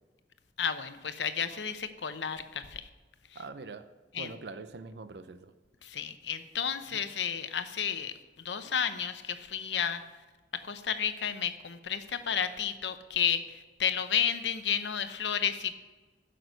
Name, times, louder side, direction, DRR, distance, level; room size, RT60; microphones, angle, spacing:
voice 1, 0.6-2.8 4.1-4.3 5.8-10.0 10.5-15.7, left 8 dB, 90° left, 10 dB, 0.8 m, -32 dB
voice 2, 3.3-3.9 4.2-5.5 6.9-7.0, right 4 dB, 75° right, 11 dB, 0.6 m, -43 dB
10.5 x 6.6 x 6.5 m, 1.3 s
head